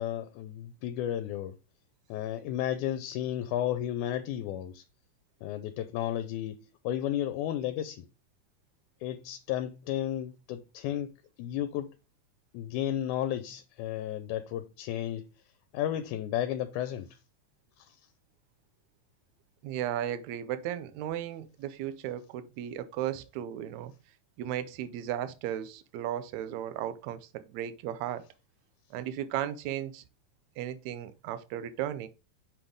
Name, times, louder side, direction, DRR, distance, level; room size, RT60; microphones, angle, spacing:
voice 1, 0.0-1.6 2.1-4.8 5.4-8.1 9.0-11.1 11.4-12.0 12.5-15.3 15.7-17.2 17.8-18.0, left 11 dB, 85° left, 2.0 m, -33 dB
voice 2, 19.6-23.9 24.4-28.3 28.9-30.0 30.6-32.1, right 11 dB, 75° right, 1.9 m, -35 dB
6.0 x 5.2 x 3.7 m
omnidirectional pair, 3.5 m